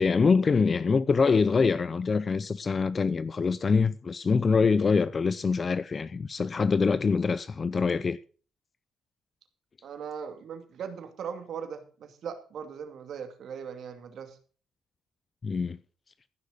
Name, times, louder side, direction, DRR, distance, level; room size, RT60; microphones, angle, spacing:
voice 1, 0.0-8.2 15.4-15.8, left 5 dB, 35° left, 0.5 m, -24 dB
voice 2, 9.8-14.4, right 7 dB, 65° right, 2.4 m, -39 dB
15.0 x 6.5 x 6.5 m
cardioid pair, 90°, 0 cm